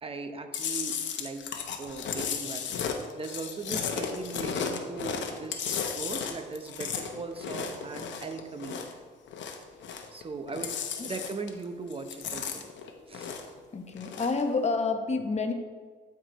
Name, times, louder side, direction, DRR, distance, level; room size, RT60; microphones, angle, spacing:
voice 1, 0.0-8.9 10.1-12.7 13.1-13.4, right 4 dB, 30° right, 7 dB, 0.8 m, -39 dB
Chewing mastication, 0.5-9.0 9.3-10.2 10.5-11.6 11.9-13.6 13.9-14.4, left 7 dB, 65° left, 0.8 m, -34 dB
voice 2, 13.7-15.5, left 4 dB, 35° left, 5 dB, 0.9 m, -29 dB
12.5 x 4.8 x 3.0 m, 1.5 s
cardioid pair, 90°, 20 cm